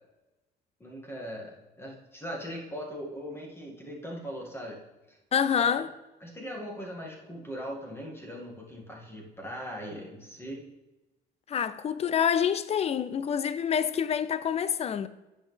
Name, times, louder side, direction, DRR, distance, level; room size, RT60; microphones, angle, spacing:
voice 1, 0.8-4.8 5.1-5.2 5.6-5.8 6.2-10.6, equal, 15° left, 2.1 m, -40 dB
voice 2, 5.3-5.9 11.5-15.1, left 8 dB, 40° left, 0.4 m, -27 dB
10.0 x 6.3 x 3.4 m
cardioid pair, 110°, 17 cm